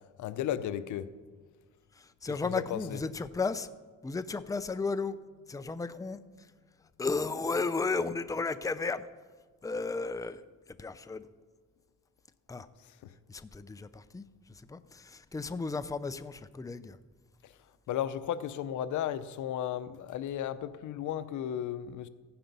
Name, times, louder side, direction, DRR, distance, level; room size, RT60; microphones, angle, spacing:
voice 1, 0.2-1.1 2.4-3.0 13.0-13.1 17.9-22.1, left 10 dB, 75° left, 14 dB, 0.7 m, -34 dB
voice 2, 1.9-3.7 4.0-5.2 5.5-6.5 7.0-9.1 9.6-10.4 10.7-11.3 12.5-12.7 13.3-14.2 14.7-17.0, left 4 dB, 10° left, 12 dB, 0.6 m, -34 dB
15.0 x 10.0 x 5.4 m, 1.5 s
cardioid pair, 90°, 30 cm